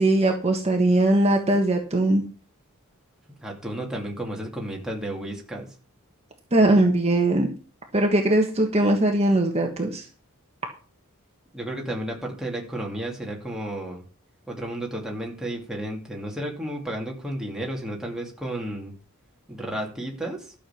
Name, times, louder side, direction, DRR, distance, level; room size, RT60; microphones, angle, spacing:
voice 1, 0.0-2.2 6.5-7.5 7.9-10.0, right 1 dB, 30° right, 2 dB, 1.5 m, -20 dB
voice 2, 3.4-5.7 11.5-14.0 14.5-18.9 19.5-20.5, right 1 dB, 5° right, -1 dB, 2.7 m, -32 dB
12.5 x 6.8 x 6.0 m, 0.37 s
head